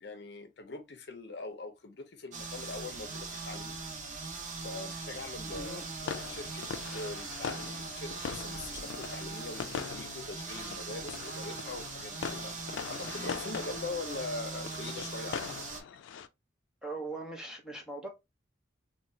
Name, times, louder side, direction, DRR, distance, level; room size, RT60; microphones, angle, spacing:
voice 1, 0.0-3.8 4.6-5.8 6.3-6.7 6.9-15.5, left 3 dB, 60° left, 0.7 m, -42 dB
sound 1, 2.3-15.8, right 4 dB, 40° right, 0.6 m, -41 dB
voice 2, 5.5-5.9 16.8-18.1, right 2 dB, 5° right, 0.7 m, -40 dB
sound 2, 6.0-16.3, left 7 dB, 90° left, 0.3 m, -42 dB
3.0 x 2.2 x 2.6 m
head